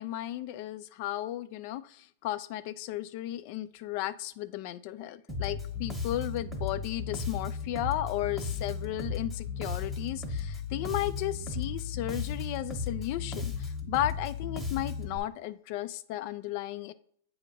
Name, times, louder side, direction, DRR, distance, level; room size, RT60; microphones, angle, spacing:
voice 1, 0.0-16.9, left 14 dB, 45° left, 14 dB, 0.4 m, -34 dB
Bass guitar, 5.3-15.2, left 4 dB, ahead, 1.0 m, -35 dB
8.3 x 2.8 x 5.2 m, 0.64 s
supercardioid pair, 155°, 0 cm